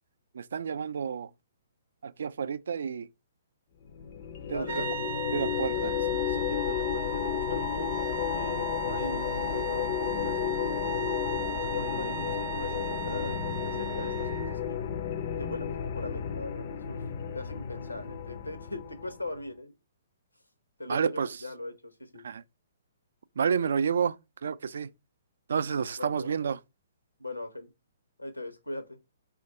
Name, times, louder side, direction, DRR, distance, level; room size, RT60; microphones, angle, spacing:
voice 1, 0.3-1.3 2.0-3.1 4.5-4.7 5.3-5.9 20.9-21.3 22.2-22.4 23.4-24.2 24.4-24.9 25.5-26.6, right 6 dB, 60° right, 0.3 m, -29 dB
sound 1, 3.9-19.3, left 9 dB, 45° left, 0.4 m, -32 dB
voice 2, 4.5-5.0 5.9-10.9 11.5-14.8 15.4-17.0 17.3-19.7 20.8-22.3 26.0-26.3 27.2-27.7 28.2-29.0, left 2 dB, 90° left, 0.8 m, -40 dB
sound 2, 4.7-14.6, right 6 dB, 45° right, 0.8 m, -37 dB
4.5 x 2.5 x 4.0 m
figure-of-eight pair, 120°, 0 cm